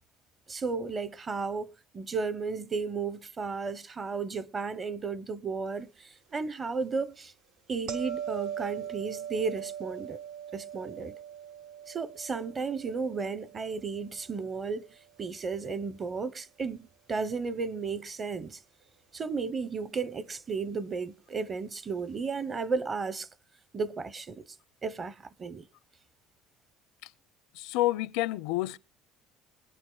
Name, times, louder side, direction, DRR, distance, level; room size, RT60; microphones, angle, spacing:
voice 1, 0.5-7.3 7.7-10.2 10.5-11.1 11.9-18.6 19.1-23.3 23.7-24.4 24.8-25.7, right 4 dB, 30° right, 0.9 m, -34 dB
sound 1, 7.9-14.9 20.1-20.3, right 9 dB, 75° right, 1.7 m, -40 dB
voice 2, 27.5-28.8, left 17 dB, 80° left, 0.5 m, -29 dB
23.5 x 9.1 x 2.3 m
supercardioid pair, 100°, 0 cm